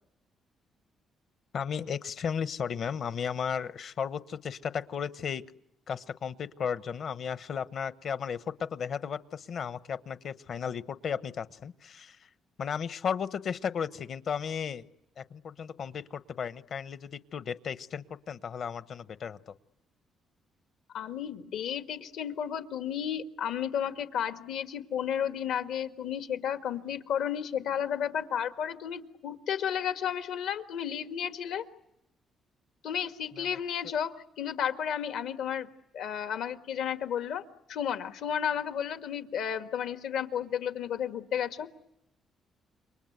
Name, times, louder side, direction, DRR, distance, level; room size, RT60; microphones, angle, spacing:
voice 1, 1.5-5.4 5.9-12.3 12.6-14.8 15.2-19.5 33.3-33.6, left 7 dB, 60° left, 13 dB, 1.0 m, -35 dB
voice 2, 20.9-31.7 32.8-35.7 35.9-41.7, left 8 dB, 85° left, 7 dB, 1.7 m, -32 dB
28.5 x 24.0 x 8.1 m, 0.85 s
cardioid pair, 90°, 0 cm